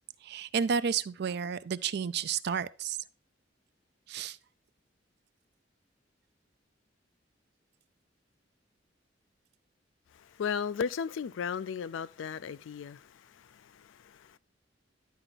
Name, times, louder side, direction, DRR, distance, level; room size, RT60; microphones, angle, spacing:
voice 1, 0.2-3.0 4.1-4.4, right 6 dB, 60° right, 0.4 m, -31 dB
voice 2, 10.1-14.4, left 6 dB, 85° left, 0.4 m, -36 dB
10.5 x 4.4 x 3.9 m
head